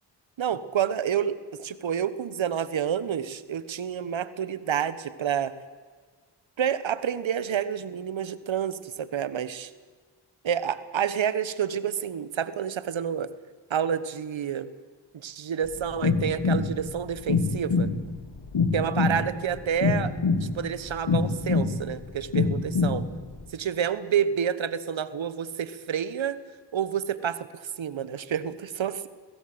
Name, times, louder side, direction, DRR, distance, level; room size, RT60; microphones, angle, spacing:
voice 1, 0.4-5.5 6.6-9.7 10.4-13.3 13.7-14.7 15.1-17.9 18.7-20.1 20.4-23.0 23.5-26.4 26.7-29.1, right 8 dB, 70° right, 16 dB, 1.3 m, -29 dB
sound 1, 15.7-23.5, left 4 dB, 70° left, 2.5 m, -26 dB
21.5 x 16.5 x 7.9 m, 1.5 s
supercardioid pair, 40°, 47 cm